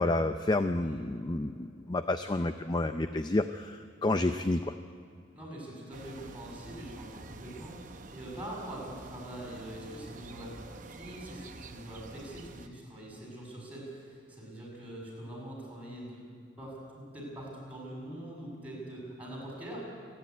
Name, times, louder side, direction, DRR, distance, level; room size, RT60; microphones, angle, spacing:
voice 1, 0.0-4.7, left 2 dB, 20° left, 9 dB, 0.4 m, -30 dB
voice 2, 0.8-1.1 5.3-16.2 16.6-19.9, right 1 dB, 10° right, -3 dB, 6.9 m, -43 dB
sound 1, 5.9-12.7, right 3 dB, 40° right, 0.8 m, -48 dB
28.0 x 10.5 x 9.4 m, 2.5 s
head